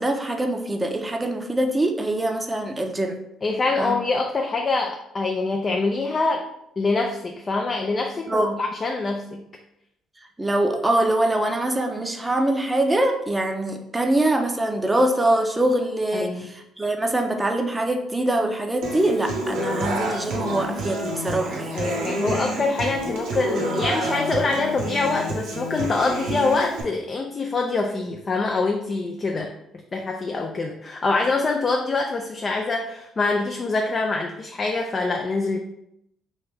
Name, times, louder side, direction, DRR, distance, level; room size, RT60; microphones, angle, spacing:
voice 1, 0.0-3.2 3.8-3.9 8.3-8.6 10.4-21.8, right 1 dB, 15° right, 4 dB, 0.5 m, -23 dB
voice 2, 3.4-6.4 6.8-9.4 16.1-16.5 21.7-29.5 29.9-35.6, left 3 dB, 40° left, 2 dB, 0.4 m, -25 dB
Human voice / Acoustic guitar, 18.8-26.8, right 1 dB, 80° right, 0.7 m, -28 dB
3.0 x 2.5 x 3.3 m, 0.79 s
supercardioid pair, 70°, 0 cm